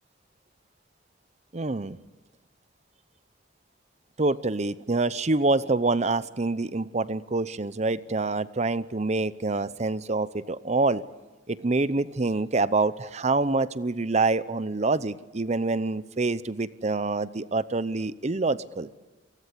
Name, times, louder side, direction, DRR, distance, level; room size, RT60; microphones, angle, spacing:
voice 1, 1.5-2.0 4.2-11.0 11.5-18.9, right 3 dB, 35° right, 16 dB, 0.7 m, -26 dB
28.5 x 19.0 x 8.4 m, 1.2 s
head